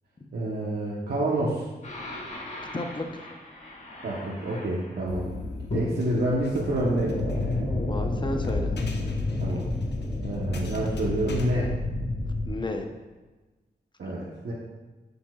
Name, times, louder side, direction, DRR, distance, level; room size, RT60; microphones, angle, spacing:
voice 1, 0.3-1.7 4.0-5.3 5.7-7.2 9.4-9.6 10.2-11.7 14.0-14.5, right 1 dB, 75° right, -6 dB, 1.1 m, -28 dB
sound 1, 1.8-5.0 5.7-12.5, left 2 dB, 45° left, 1.6 m, -31 dB
voice 2, 2.7-3.3 7.7-8.7 12.5-12.9 14.0-14.1, left 2 dB, 25° left, 4 dB, 0.8 m, -33 dB
sound 2, 5.1-11.5, left 2 dB, 85° left, 0.7 m, -40 dB
7.8 x 7.0 x 2.4 m, 1.2 s
wide cardioid pair, 75°, 17 cm